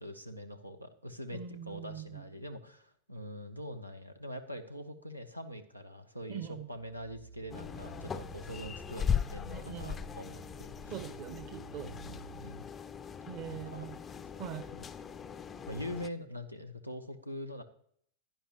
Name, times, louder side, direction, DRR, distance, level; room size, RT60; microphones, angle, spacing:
voice 1, 0.0-10.9 11.8-12.7 13.5-13.9 14.7-14.9 15.7-17.6, equal, 90° right, 8 dB, 0.7 m, -44 dB
voice 2, 1.3-2.2 6.3-6.7 9.5-10.0 10.9-11.9 13.3-14.0 14.4-14.7, right 9 dB, 45° right, 10 dB, 1.1 m, -42 dB
sound 1, 6.7-12.6, right 6 dB, 60° right, 2.5 m, -53 dB
sound 2, 7.5-16.1, left 7 dB, 20° left, 0.4 m, -39 dB
10.5 x 10.0 x 2.9 m, 0.65 s
figure-of-eight pair, 90°, 0 cm